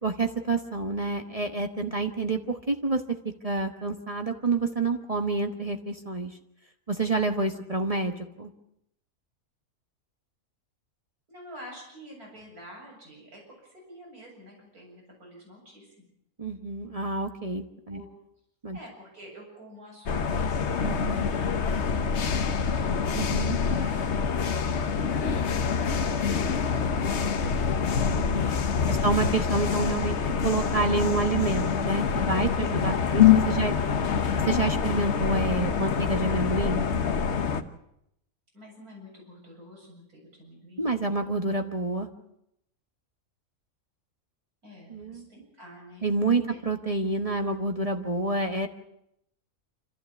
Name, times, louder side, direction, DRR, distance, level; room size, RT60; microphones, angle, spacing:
voice 1, 0.0-3.2 3.4-6.3 6.9-8.5 16.4-18.0 18.6-18.8 20.8-21.3 23.1-23.6 28.1-28.5 28.9-33.7 34.4-36.9 40.8-42.1 44.9-45.3 46.0-48.7, right 3 dB, 25° right, 5 dB, 1.2 m, -28 dB
voice 2, 11.3-16.1 17.9-18.1 18.7-20.5 21.0-22.7 23.6-25.1 38.5-40.9 44.6-46.1 46.5-46.6, equal, 90° right, -1 dB, 8.2 m, -48 dB
sound 1, 20.1-37.6, left 6 dB, 55° left, 1.2 m, -25 dB
27.0 x 14.0 x 8.2 m, 0.79 s
omnidirectional pair, 1.5 m